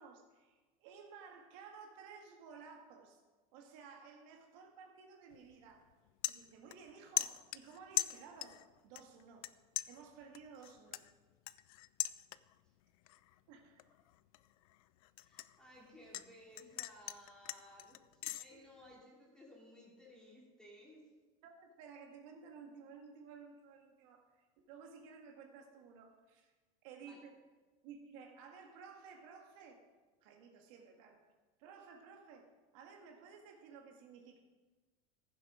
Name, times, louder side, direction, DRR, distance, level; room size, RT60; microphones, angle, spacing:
voice 1, 0.0-3.2 3.5-5.8 6.3-9.5 9.9-11.0 13.5-13.8 18.5-18.7 21.4-26.5 26.8-27.3 27.8-29.8 30.2-31.2 31.6-34.4, right 5 dB, 70° right, 2 dB, 1.9 m, -55 dB
sound 1, 5.3-5.5 5.9-6.9 7.2-8.7 9.0-9.5 9.8-12.7 13.1-13.4 13.8-16.3 16.6-18.4, left 17 dB, 90° left, 0.5 m, -40 dB
voice 2, 15.2-18.0 18.4-21.0 27.0-27.2, left 1 dB, 5° left, -3 dB, 3.0 m, -58 dB
15.0 x 7.6 x 5.0 m, 1.3 s
supercardioid pair, 150°, 18 cm